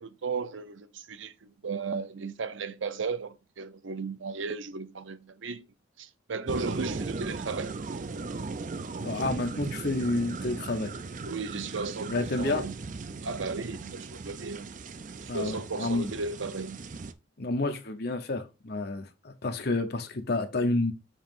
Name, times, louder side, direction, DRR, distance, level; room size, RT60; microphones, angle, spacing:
voice 1, 0.0-5.6 6.0-7.8 9.5-9.6 11.3-12.7 13.2-14.7 15.2-16.8, right 4 dB, 80° right, 0.7 m, -35 dB
sound 1, 6.5-17.1, right 3 dB, 40° right, 0.5 m, -38 dB
voice 2, 9.0-10.9 12.1-12.6 15.3-16.1 17.4-20.9, left 2 dB, 55° left, 1.0 m, -30 dB
7.2 x 3.0 x 5.4 m
head